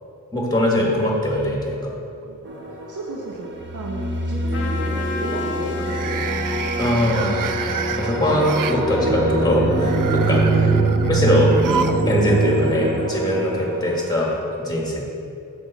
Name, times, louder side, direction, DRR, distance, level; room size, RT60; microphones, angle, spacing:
voice 1, 0.3-1.9 6.8-7.5 8.0-10.4 11.1-11.5 12.1-14.3 14.6-15.0, left 1 dB, 15° left, -2 dB, 1.6 m, -21 dB
sound 1, 2.2-2.8 3.2-3.6 5.7-8.8 9.6-12.1 12.4-12.5 13.6-13.7, right 7 dB, 85° right, 0.5 m, -30 dB
sound 2, 2.4-3.0 3.5-14.2, right 2 dB, 35° right, 1.1 m, -23 dB
voice 2, 2.9-6.3 10.5-10.9 11.5-11.8, right 2 dB, 70° right, -2 dB, 1.0 m, -34 dB
Trumpet, 4.5-9.6, left 4 dB, 40° left, 1.1 m, -35 dB
8.6 x 7.0 x 4.1 m, 2.6 s
wide cardioid pair, 125°, 31 cm